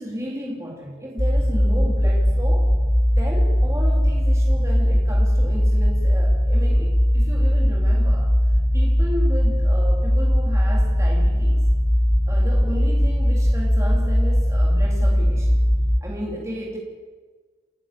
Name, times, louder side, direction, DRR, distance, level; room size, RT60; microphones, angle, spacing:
voice 1, 0.0-2.7 3.2-8.3 8.7-11.6 12.3-15.6 16.0-16.8, equal, 15° right, -2 dB, 3.5 m, -33 dB
sound 1, 1.2-16.0, equal, 15° left, 1.1 m, -19 dB
29.5 x 11.0 x 8.7 m, 1.4 s
head